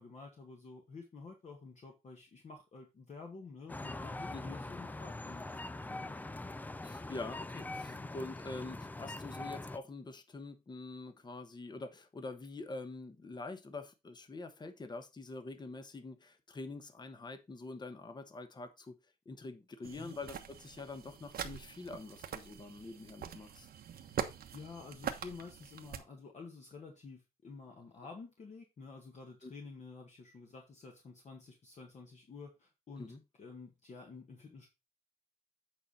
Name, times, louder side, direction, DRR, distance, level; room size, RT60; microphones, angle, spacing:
voice 1, 0.0-6.2 7.9-8.1 20.0-20.1 24.0-33.1 33.4-34.7, left 4 dB, 45° left, 1.7 m, -50 dB
sound 1, 3.7-9.8, left 2 dB, 10° left, 0.4 m, -43 dB
voice 2, 4.3-4.6 6.8-19.0 19.3-23.7 29.4-29.5 33.0-33.2, left 3 dB, 25° left, 1.1 m, -45 dB
sound 2, 19.8-26.0, right 8 dB, 75° right, 1.1 m, -43 dB
8.7 x 5.2 x 4.1 m
wide cardioid pair, 135°, 16 cm